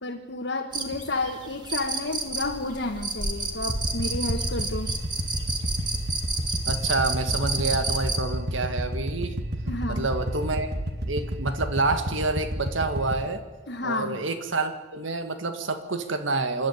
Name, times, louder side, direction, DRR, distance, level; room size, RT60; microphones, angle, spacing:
voice 1, 0.0-4.9 9.7-10.1 13.7-14.2, left 2 dB, 65° left, 1 dB, 1.5 m, -31 dB
sound 1, 0.7-8.2, right 3 dB, 25° right, 1.8 m, -31 dB
sound 2, 3.6-13.3, equal, 55° right, 1.8 m, -31 dB
voice 2, 6.7-9.4 9.9-10.7 11.1-13.4 13.8-16.7, right 3 dB, 85° right, 8 dB, 2.0 m, -28 dB
26.5 x 11.5 x 9.8 m, 1.2 s
head